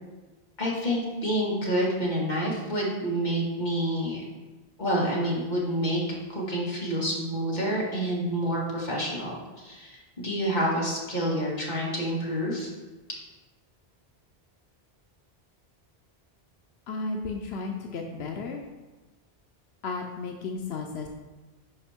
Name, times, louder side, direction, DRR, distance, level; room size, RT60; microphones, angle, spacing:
voice 1, 0.6-4.2 4.8-6.0 6.3-12.7, equal, 45° left, -5 dB, 2.1 m, -28 dB
voice 2, 16.9-18.6 19.8-21.1, left 4 dB, 85° left, 3 dB, 1.0 m, -33 dB
11.0 x 5.1 x 3.6 m, 1.2 s
omnidirectional pair, 1.1 m